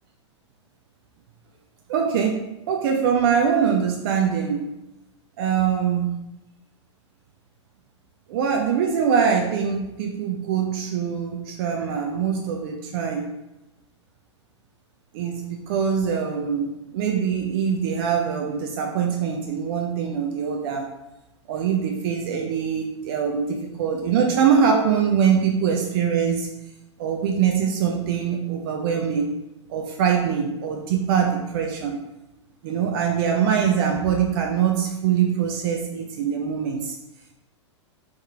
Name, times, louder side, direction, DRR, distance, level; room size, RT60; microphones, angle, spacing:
voice 1, 1.9-4.7 5.4-6.1 8.3-13.3 15.1-20.9 21.5-26.5 27.0-29.3 29.7-32.0 32.6-37.0, right 7 dB, 50° right, 1 dB, 0.5 m, -23 dB
3.7 x 3.1 x 3.2 m, 0.92 s
figure-of-eight pair, 100°, 16 cm